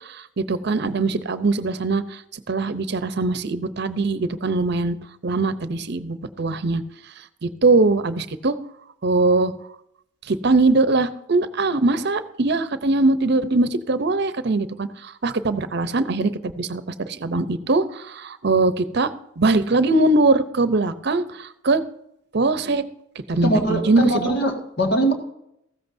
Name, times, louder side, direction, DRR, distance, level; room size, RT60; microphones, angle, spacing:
voice 1, 0.0-5.0 5.2-6.8 7.4-8.6 9.0-9.5 10.3-21.8 22.3-22.8 23.3-24.3, right 3 dB, 60° right, 12 dB, 0.7 m, -21 dB
voice 2, 23.3-25.1, right 1 dB, 60° left, 3 dB, 1.8 m, -21 dB
15.0 x 13.5 x 2.7 m, 0.78 s
head